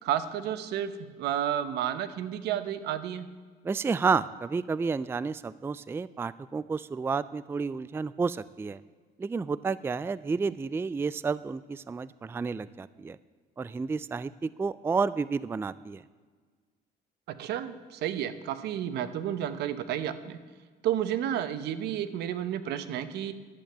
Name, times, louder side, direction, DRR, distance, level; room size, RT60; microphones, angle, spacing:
voice 1, 0.0-3.3 17.3-20.4 20.8-23.3, right 10 dB, 80° right, 13 dB, 1.0 m, -31 dB
voice 2, 3.6-8.8 9.2-13.2 13.6-16.0, right 5 dB, 15° right, 18 dB, 0.3 m, -31 dB
11.5 x 8.7 x 9.1 m, 1.5 s
cardioid pair, 110°, 17 cm